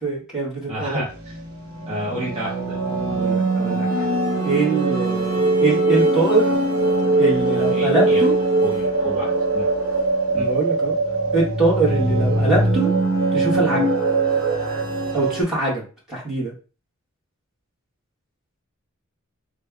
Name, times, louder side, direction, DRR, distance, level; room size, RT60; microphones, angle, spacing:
voice 1, 0.0-1.0 3.1-4.1 4.4-6.5 7.2-8.3 10.3-10.9 11.3-12.9 13.3-13.9 15.1-15.8 16.1-16.5, right 3 dB, ahead, -7 dB, 1.5 m, -23 dB
voice 2, 0.7-1.4 1.8-2.8 3.2-3.5 7.5-8.2 8.6-9.7 10.3-10.5, right 1 dB, 30° right, -6 dB, 0.9 m, -31 dB
Cyber Ambient Dreamscape, 1.1-15.4, right 2 dB, 75° right, 0.9 m, -21 dB
3.3 x 2.4 x 3.4 m, 0.36 s
head